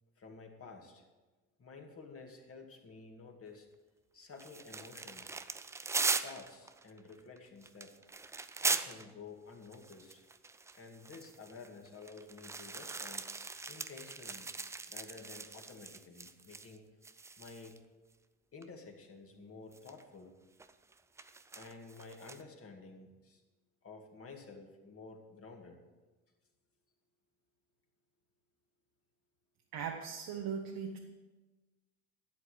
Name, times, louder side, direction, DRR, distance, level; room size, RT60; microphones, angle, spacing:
voice 1, 0.2-1.0 1.6-3.7 4.1-5.4 6.2-7.9 8.6-10.2 10.7-13.3 13.7-14.5 14.9-16.8 17.4-17.8 18.5-20.3 21.5-23.4 23.8-25.8, left 4 dB, 30° left, 2 dB, 2.3 m, -51 dB
sound 1, 4.4-9.1 9.7-16.8 17.0-17.8 18.6-18.7 19.7-20.0 20.6-22.4, right 4 dB, 5° right, 0.3 m, -40 dB
voice 2, 29.7-31.0, right 7 dB, 50° right, 1 dB, 1.4 m, -39 dB
12.0 x 8.0 x 6.0 m, 1.2 s
hypercardioid pair, 70°, 45 cm